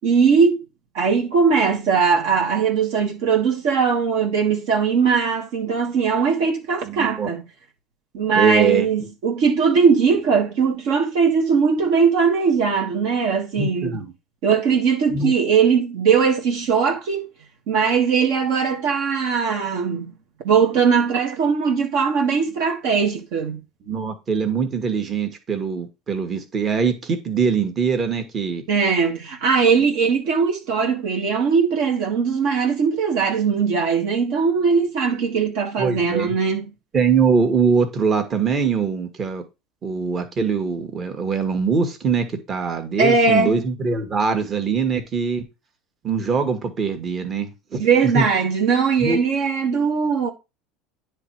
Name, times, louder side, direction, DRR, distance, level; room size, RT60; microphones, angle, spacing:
voice 1, 0.0-0.6 0.9-7.4 8.1-14.0 14.4-17.3 17.7-20.1 20.4-23.6 28.7-36.6 43.0-43.6 47.7-50.3, right 5 dB, 65° right, 1.5 m, -20 dB
voice 2, 6.8-7.3 8.3-8.8 13.6-14.1 15.1-15.3 23.9-28.6 35.8-36.3 36.9-39.4 39.8-45.4 46.0-47.8 48.1-48.2 49.0-49.2, right 5 dB, 40° right, 1.7 m, -22 dB
9.7 x 3.3 x 4.7 m
hypercardioid pair, 80°, 0 cm